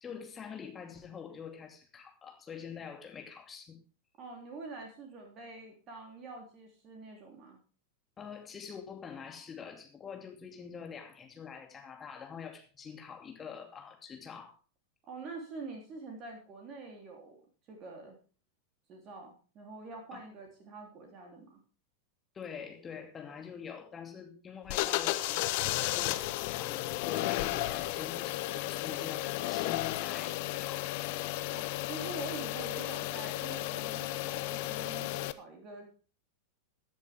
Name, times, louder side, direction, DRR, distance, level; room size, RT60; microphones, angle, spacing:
voice 1, 0.0-3.8 8.2-14.5 20.1-20.2 22.3-30.8, left 7 dB, 20° left, 4 dB, 2.5 m, -45 dB
voice 2, 4.2-7.6 15.0-17.4 17.7-18.2 18.9-21.6 31.5-35.8, right 3 dB, 35° right, 2 dB, 3.4 m, -46 dB
sound 1, 24.7-35.3, left 18 dB, 50° left, 0.8 m, -34 dB
16.0 x 10.5 x 3.6 m, 0.37 s
figure-of-eight pair, 90°, 0 cm